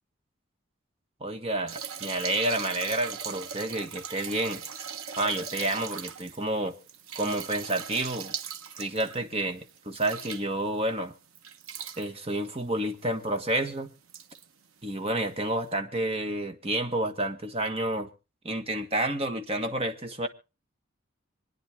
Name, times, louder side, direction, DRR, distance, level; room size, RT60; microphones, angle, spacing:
voice 1, 1.2-6.8 7.1-8.3 8.8-11.1 12.0-13.9 14.8-18.1 18.4-20.3, right 1 dB, 30° right, 1.4 m, -30 dB
sound 1, 1.7-10.8 11.4-12.1 13.0-13.1 13.4-13.5 14.1-14.5 15.5-15.6, right 7 dB, 85° right, 1.0 m, -39 dB
27.0 x 9.8 x 3.5 m
head